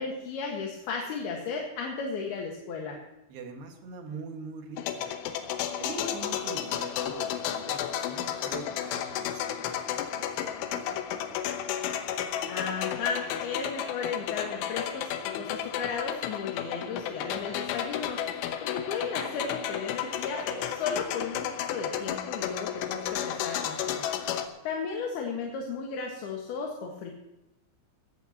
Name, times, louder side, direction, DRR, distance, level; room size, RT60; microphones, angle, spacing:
voice 1, 0.0-3.0 12.5-24.0 24.6-27.1, left 5 dB, 65° left, 0 dB, 3.2 m, -35 dB
voice 2, 3.3-5.1 5.8-11.8 17.5-17.9, right 3 dB, 65° right, 3 dB, 3.6 m, -43 dB
sound 1, 4.8-24.5, left 10 dB, 85° left, 3.5 m, -33 dB
19.5 x 15.0 x 2.9 m, 0.93 s
omnidirectional pair, 5.4 m